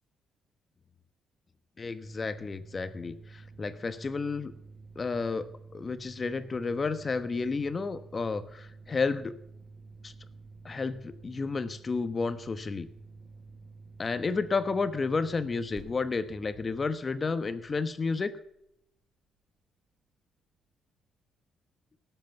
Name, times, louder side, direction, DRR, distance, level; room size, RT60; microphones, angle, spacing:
voice 1, 1.8-4.5 5.0-5.5 5.7-9.3 10.0-10.1 10.6-12.9 14.0-18.3, left 4 dB, 35° left, 12 dB, 1.1 m, -31 dB
sound 1, 2.0-18.4, right 3 dB, 15° right, 7.2 m, -51 dB
18.0 x 8.0 x 7.0 m, 0.78 s
cardioid pair, 90°, 0 cm